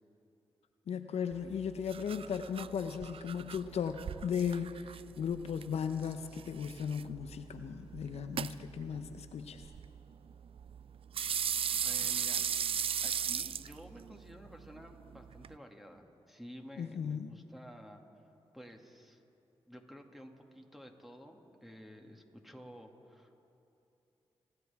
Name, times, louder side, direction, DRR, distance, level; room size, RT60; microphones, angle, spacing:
voice 1, 0.9-9.7 16.8-17.4, left 7 dB, 75° left, 8 dB, 0.6 m, -36 dB
sound 1, 1.3-15.5, right 8 dB, 60° right, 0.3 m, -39 dB
voice 2, 11.8-18.0 18.5-19.2 19.7-23.4, equal, ahead, 2 dB, 2.1 m, -52 dB
29.5 x 11.5 x 3.5 m, 2.8 s
supercardioid pair, 40°, 11 cm